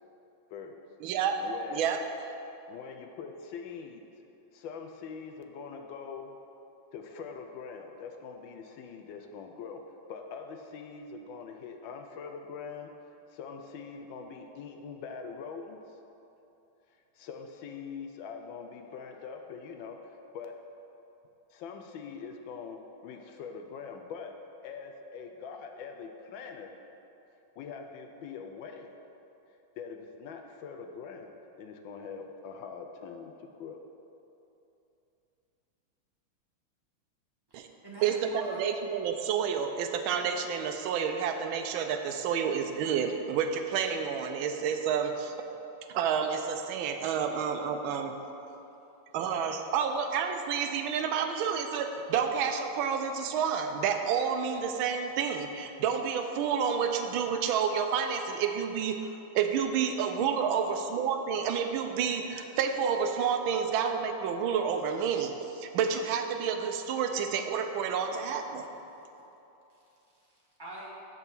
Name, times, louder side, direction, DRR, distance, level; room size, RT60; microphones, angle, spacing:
voice 1, 0.5-0.8 1.4-1.9 2.7-4.1 4.5-6.3 6.9-16.0 16.9-20.6 21.5-24.3 24.6-26.7 27.6-29.0 29.8-33.8, left 5 dB, 75° left, 4 dB, 1.3 m, -43 dB
voice 2, 1.0-1.4 1.7-2.0 37.5-37.7 38.0-45.5 45.9-48.1 49.1-59.0 59.3-68.7, right 7 dB, 80° right, 6 dB, 1.4 m, -29 dB
voice 3, 37.5-38.8 70.2-70.9, right 1 dB, 15° right, -7 dB, 1.3 m, -45 dB
6.1 x 5.6 x 7.1 m, 2.9 s
omnidirectional pair, 2.3 m